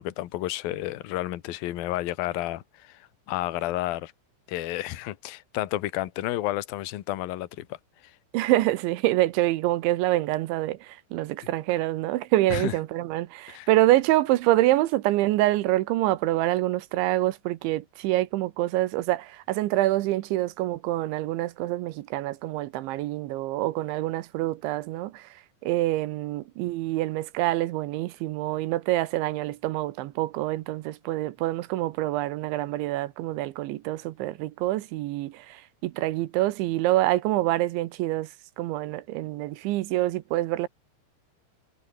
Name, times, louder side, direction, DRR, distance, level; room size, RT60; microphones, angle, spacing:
voice 1, 0.0-4.1 4.5-7.8 8.0-8.1 12.5-12.7 13.5-13.7, left 15 dB, 65° left, 2.5 m, -31 dB
voice 2, 8.3-40.7, right 16 dB, 80° right, 3.0 m, -26 dB
omnidirectional pair, 5.9 m